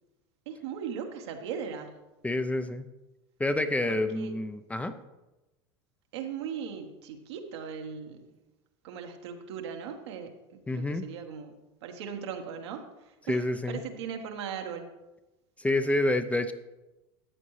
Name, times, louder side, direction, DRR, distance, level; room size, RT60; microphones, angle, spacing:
voice 1, 0.4-2.0 3.9-4.3 6.1-8.3 8.8-10.3 10.7-11.5 11.8-14.9, right 7 dB, 80° right, 4 dB, 1.3 m, -38 dB
voice 2, 2.2-2.9 3.4-4.9 10.7-11.1 13.3-13.8 15.6-16.5, left 2 dB, 10° left, 9 dB, 0.5 m, -28 dB
13.5 x 8.2 x 3.2 m, 1.0 s
supercardioid pair, 105°, 14 cm